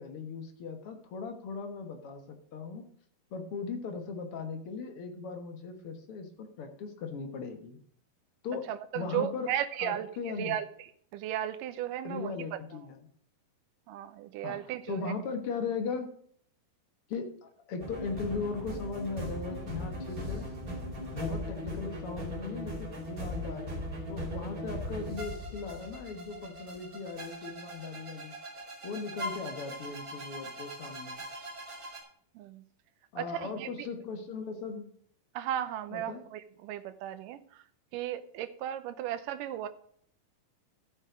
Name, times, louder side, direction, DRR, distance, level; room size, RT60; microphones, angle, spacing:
voice 1, 0.0-2.9 3.3-7.8 8.4-8.7 8.9-9.5 9.8-10.6 12.0-13.0 14.4-14.6 14.9-16.1 17.1-20.5 21.1-28.3 28.8-31.2 33.1-34.9 35.9-36.2, left 4 dB, 60° left, 6 dB, 1.5 m, -38 dB
voice 2, 8.7-12.6 13.9-15.1 32.3-32.6 33.2-33.9 35.3-37.7 37.9-39.7, right 11 dB, 75° right, 11 dB, 2.1 m, -36 dB
sound 1, 17.8-32.0, equal, 25° right, 2.7 m, -39 dB
13.0 x 7.5 x 5.0 m, 0.62 s
omnidirectional pair, 4.3 m